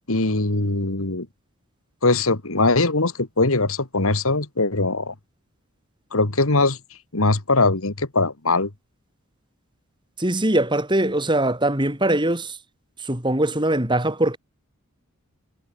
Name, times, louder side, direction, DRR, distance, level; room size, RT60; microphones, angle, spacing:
voice 1, 0.1-1.3 2.0-5.1 6.1-6.8 7.1-8.7, left 3 dB, 70° left, 2.2 m, -21 dB
voice 2, 10.2-12.6 13.0-14.4, right 1 dB, 20° right, 3.5 m, -21 dB
head